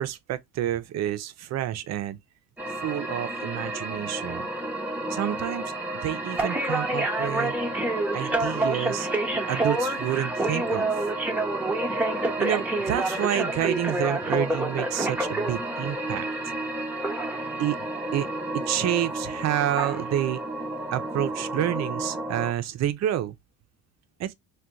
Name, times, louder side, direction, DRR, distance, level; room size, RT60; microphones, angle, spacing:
voice 1, 0.0-2.2 2.8-4.5 5.1-5.7 6.0-7.5 8.1-9.1 9.5-11.1 12.4-16.5 17.6-17.8 18.1-18.3 18.5-20.4 20.9-23.4 24.2-24.3, right 12 dB, 50° right, 0.4 m, -29 dB
sound 1, 2.6-22.5, right 2 dB, 5° right, 0.7 m, -29 dB
2.4 x 2.2 x 3.9 m
cardioid pair, 135°, 36 cm